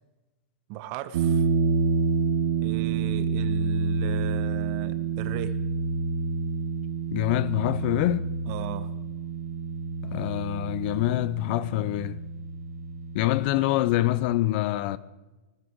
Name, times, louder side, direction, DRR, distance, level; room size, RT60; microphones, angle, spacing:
voice 1, 0.7-1.5 2.6-5.5 8.5-8.9, right 11 dB, 45° right, 1.2 m, -36 dB
sound 1, 1.1-14.2, right 5 dB, 65° right, 1.5 m, -28 dB
voice 2, 7.1-8.3 10.0-12.2 13.1-15.0, left 16 dB, 50° left, 0.6 m, -25 dB
20.5 x 12.5 x 4.7 m
hypercardioid pair, 120°, 7 cm